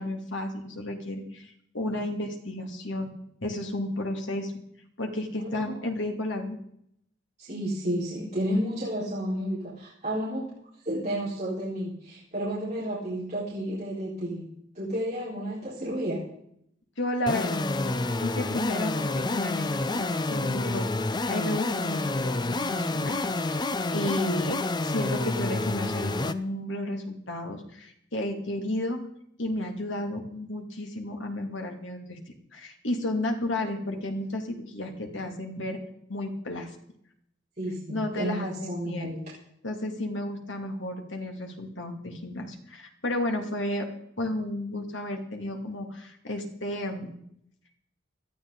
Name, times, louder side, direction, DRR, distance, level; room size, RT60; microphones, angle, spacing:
voice 1, 0.0-1.5 1.7-3.1 3.4-4.6 5.0-6.6 17.0-29.0 29.4-35.8 36.1-36.7 37.9-39.1 39.6-43.9 44.2-47.1, left 1 dB, 75° left, 3 dB, 2.5 m, -32 dB
voice 2, 5.4-5.8 7.4-10.5 10.8-16.2 37.6-39.2, equal, 40° right, -9 dB, 4.5 m, -31 dB
sound 1, 17.3-26.3, left 2 dB, 25° left, 0.6 m, -29 dB
18.0 x 13.0 x 4.0 m, 0.72 s
head